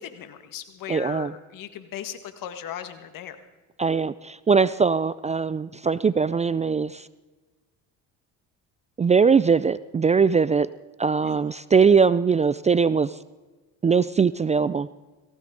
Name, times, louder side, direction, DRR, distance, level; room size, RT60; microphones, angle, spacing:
voice 1, 0.0-3.4 11.2-11.4, left 9 dB, 65° left, 8 dB, 1.9 m, -37 dB
voice 2, 0.9-1.3 3.8-7.0 9.0-10.7 11.0-13.1 13.8-14.9, right 5 dB, 20° right, 17 dB, 0.4 m, -21 dB
18.5 x 17.0 x 3.9 m, 1.2 s
supercardioid pair, 75°, 36 cm